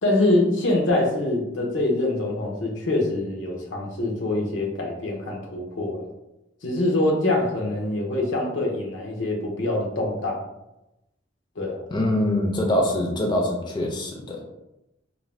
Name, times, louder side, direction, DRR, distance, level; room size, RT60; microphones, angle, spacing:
voice 1, 0.0-6.0 6.6-10.4 11.6-11.8, left 2 dB, 85° left, 0 dB, 0.6 m, -24 dB
voice 2, 11.9-14.4, left 1 dB, 25° left, 0 dB, 0.4 m, -24 dB
2.5 x 2.1 x 3.1 m, 0.92 s
head